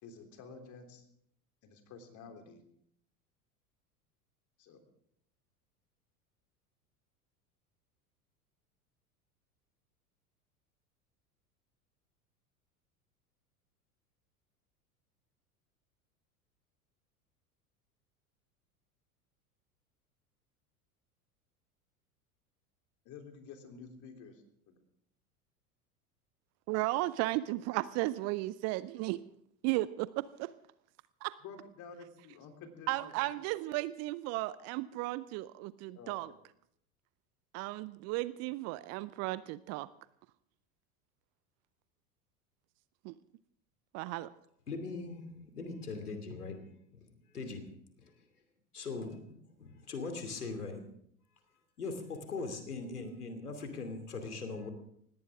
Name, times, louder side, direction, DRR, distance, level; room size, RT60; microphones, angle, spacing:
voice 1, 0.0-1.1 1.6-2.6 4.6-4.8 23.0-24.8 31.4-33.1 35.9-36.2, left 5 dB, 40° left, 5 dB, 3.4 m, -51 dB
voice 2, 26.7-29.2 29.6-30.5 31.2-31.3 32.9-36.3 37.5-39.9 43.0-43.1 43.9-44.3, right 18 dB, 35° right, 18 dB, 0.6 m, -35 dB
voice 3, 44.7-46.5 46.9-47.6 48.7-49.2 49.6-50.8 51.8-54.7, left 3 dB, 80° left, 7 dB, 2.7 m, -40 dB
19.0 x 17.5 x 3.6 m, 0.69 s
figure-of-eight pair, 80°, 45 cm